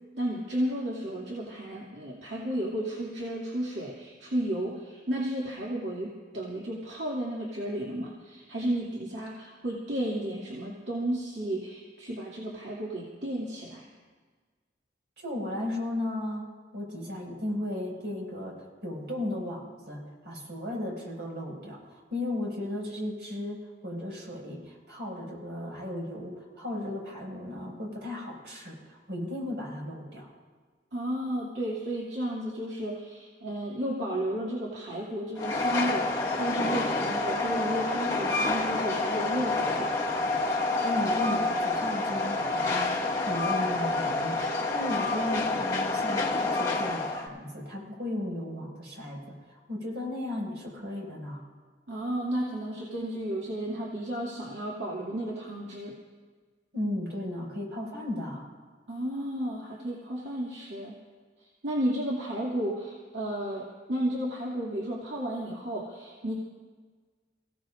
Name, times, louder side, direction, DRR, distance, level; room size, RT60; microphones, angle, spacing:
voice 1, 0.1-13.9 30.9-40.0 51.9-56.0 58.9-61.0 61.6-66.3, right 1 dB, 85° right, -5 dB, 2.5 m, -33 dB
voice 2, 15.2-30.3 40.8-51.4 56.7-58.5, left 1 dB, 70° right, -1 dB, 5.9 m, -35 dB
Train, 35.4-47.3, left 2 dB, 20° left, 2.1 m, -28 dB
29.5 x 17.0 x 2.6 m, 1.5 s
head